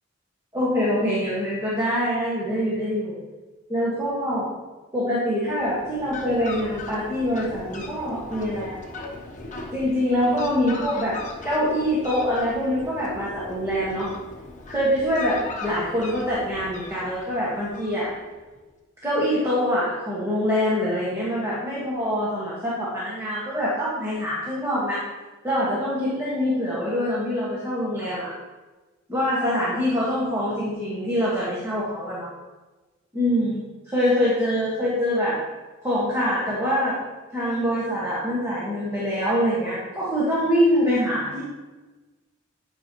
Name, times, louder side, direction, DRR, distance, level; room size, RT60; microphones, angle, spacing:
voice 1, 0.5-3.2 3.7-4.5 4.9-8.8 9.7-14.1 14.7-18.1 19.0-25.0 25.4-28.3 29.1-32.3 33.1-35.4 35.8-37.0 37.3-41.4, equal, 15° right, -8 dB, 1.6 m, -24 dB
Fowl, 5.4-18.4, left 3 dB, 40° left, 1.0 m, -39 dB
9.8 x 5.2 x 3.0 m, 1.2 s
head